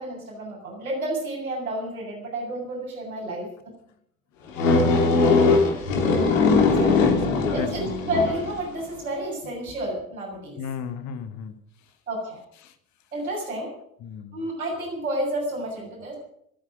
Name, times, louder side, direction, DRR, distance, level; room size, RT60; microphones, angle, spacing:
voice 1, 0.0-3.5 6.8-7.0 7.5-10.6 12.1-12.4 13.1-13.7 14.3-16.2, right 1 dB, 80° right, -2 dB, 7.7 m, -30 dB
sound 1, 4.6-8.6, left 3 dB, 65° left, 3.1 m, -20 dB
voice 2, 4.7-5.2 6.9-7.7 10.6-11.6 12.6-12.7 14.0-14.4, left 7 dB, 40° left, 9 dB, 1.9 m, -34 dB
26.5 x 9.9 x 5.1 m, 0.70 s
figure-of-eight pair, 65°, 42 cm